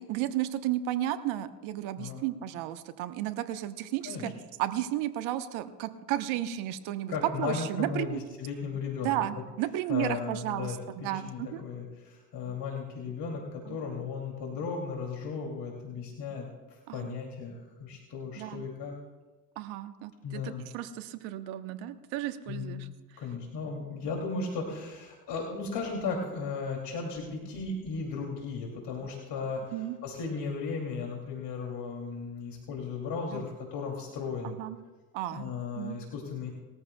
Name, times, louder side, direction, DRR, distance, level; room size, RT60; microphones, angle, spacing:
voice 1, 0.0-4.3 4.6-8.4 9.0-11.6 13.7-13.8 16.9-17.2 18.3-18.7 19.6-22.9 23.1-23.2 29.7-30.0 33.3-33.4 34.4-34.8 35.1-35.5 35.8-36.0, right 13 dB, 70° right, 10 dB, 1.1 m, -33 dB
voice 2, 7.1-9.1 9.9-18.9 20.2-20.6 22.5-22.8 23.2-29.7 30.0-34.6 35.3-36.5, left 4 dB, 55° left, 0 dB, 2.8 m, -36 dB
21.0 x 14.0 x 2.3 m, 1.2 s
hypercardioid pair, 65°, 49 cm